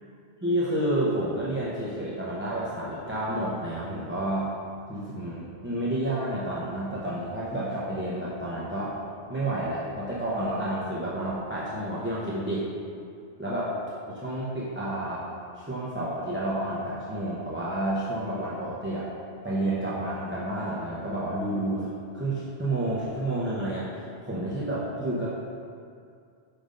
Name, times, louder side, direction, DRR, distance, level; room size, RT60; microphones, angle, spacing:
voice 1, 0.4-4.5 4.9-9.0 9.3-12.7 13.4-13.7 14.1-15.3 15.5-19.1 19.4-25.3, right 1 dB, 15° right, -9 dB, 0.7 m, -30 dB
4.9 x 4.0 x 5.2 m, 2.3 s
omnidirectional pair, 1.1 m